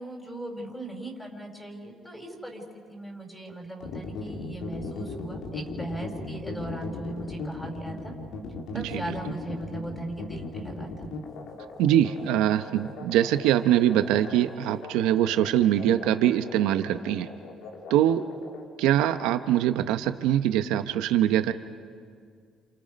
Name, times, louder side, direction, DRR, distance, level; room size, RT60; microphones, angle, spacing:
voice 1, 0.0-2.6 2.9-8.1 8.7-11.1, right 1 dB, 10° left, 1 dB, 4.8 m, -38 dB
sound 1, 3.8-18.6, left 3 dB, 75° left, 3.3 m, -38 dB
voice 2, 11.8-17.3 17.9-18.2 18.8-21.5, right 11 dB, 90° right, 9 dB, 1.0 m, -23 dB
29.0 x 27.5 x 5.3 m, 2.1 s
cardioid pair, 90°, 0 cm